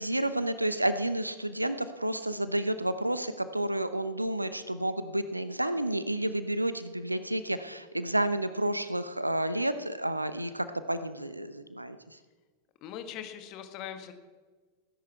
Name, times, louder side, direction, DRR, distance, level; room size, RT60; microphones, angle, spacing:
voice 1, 0.0-12.0, right 1 dB, 85° right, 13 dB, 0.7 m, -30 dB
voice 2, 12.8-14.1, left 9 dB, 40° left, 8 dB, 1.5 m, -41 dB
18.5 x 10.5 x 4.7 m, 1.4 s
figure-of-eight pair, 90°, 0 cm